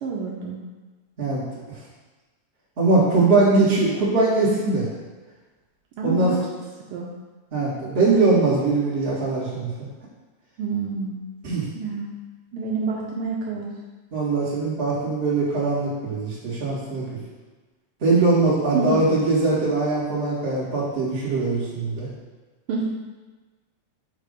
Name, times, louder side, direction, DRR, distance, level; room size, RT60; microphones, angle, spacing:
voice 1, 0.0-0.6 6.0-6.4 6.9-7.1 10.6-11.2 11.7-12.1 12.5-13.7 18.7-19.0 22.7-22.9, right 4 dB, 90° right, -3 dB, 1.2 m, -27 dB
voice 2, 2.8-4.9 6.0-6.4 7.5-9.7 11.4-11.6 14.1-17.1 18.0-22.1, right 3 dB, 30° right, -8 dB, 1.3 m, -21 dB
6.9 x 2.8 x 5.0 m, 1.3 s
omnidirectional pair, 3.3 m